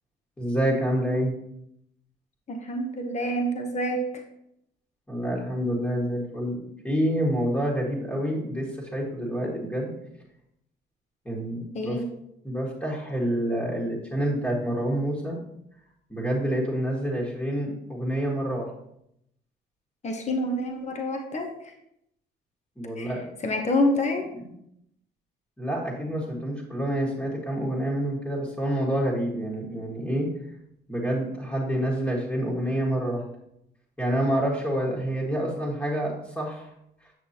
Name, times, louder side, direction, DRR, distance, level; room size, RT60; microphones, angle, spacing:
voice 1, 0.4-1.3 5.1-9.9 11.3-12.0 12.4-15.4 16.1-18.7 22.8-23.2 24.3-24.5 25.6-30.3 30.9-33.2 34.0-36.7, equal, 10° left, -5 dB, 1.8 m, -27 dB
voice 2, 2.5-4.0 11.7-12.1 20.0-21.5 23.0-23.1 23.4-24.2, left 1 dB, 35° left, 3 dB, 1.1 m, -27 dB
8.1 x 6.5 x 2.9 m, 0.78 s
cardioid pair, 90°, 20 cm